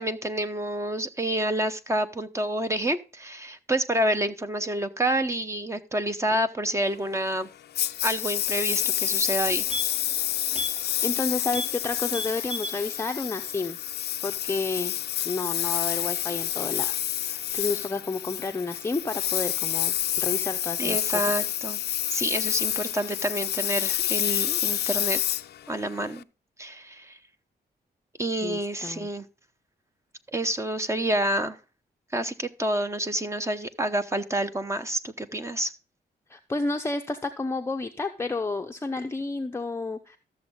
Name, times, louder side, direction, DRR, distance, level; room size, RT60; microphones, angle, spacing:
voice 1, 0.0-7.5 8.0-9.6 20.8-21.8 22.1-25.2 25.7-26.2 26.6-27.2 28.2-29.3 30.3-31.6 32.1-35.7, right 1 dB, 15° right, 10 dB, 0.9 m, -28 dB
Engine, 7.8-26.2, left 11 dB, 80° left, 0.5 m, -28 dB
sound 1, 8.8-9.0 9.3-10.1 10.5-10.8 11.1-11.2 11.5-11.8 12.1-12.8 13.2-13.3, equal, 45° right, 3.7 m, -35 dB
voice 2, 10.6-13.8 14.2-14.9 15.2-16.9 17.2-21.4 28.4-29.1 36.3-40.2, left 3 dB, 15° left, 5 dB, 0.7 m, -31 dB
13.5 x 7.1 x 3.7 m, 0.32 s
wide cardioid pair, 120°, 17 cm